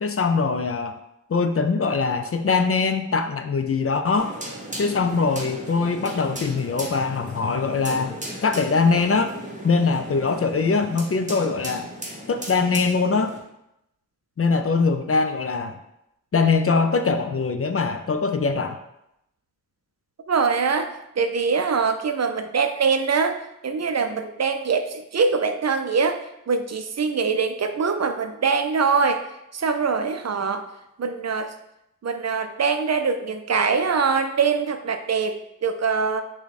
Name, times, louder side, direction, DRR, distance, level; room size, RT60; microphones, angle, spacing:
voice 1, 0.0-0.9 1.3-4.3 4.8-9.3 9.6-11.9 12.3-13.3 14.4-15.8 16.3-18.8, left 4 dB, 45° left, 8 dB, 0.4 m, -22 dB
sound 1, 4.2-13.4, equal, 25° right, 1.1 m, -36 dB
voice 2, 20.3-29.3 29.5-30.7 31.0-31.5 32.0-36.2, right 5 dB, 55° right, 8 dB, 0.4 m, -23 dB
5.8 x 2.2 x 4.0 m, 0.84 s
wide cardioid pair, 65°, 32 cm